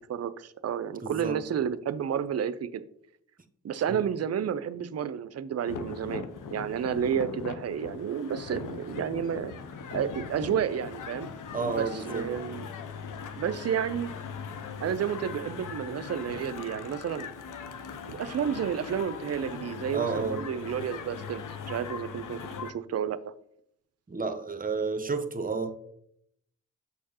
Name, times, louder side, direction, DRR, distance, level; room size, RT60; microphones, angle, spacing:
voice 1, 0.1-2.8 3.6-6.3 6.5-9.5 9.9-11.3 11.6-12.7 13.4-14.1 14.8-17.3 18.1-23.3, right 8 dB, 45° right, 0.5 m, -31 dB
voice 2, 1.0-1.4 3.9-4.0 11.5-12.3 19.9-20.4 24.1-25.7, right 4 dB, 25° right, 0.8 m, -31 dB
sound 1, 5.7-22.7, left 6 dB, 60° left, 0.7 m, -40 dB
6.3 x 5.5 x 2.9 m
supercardioid pair, 40°, 36 cm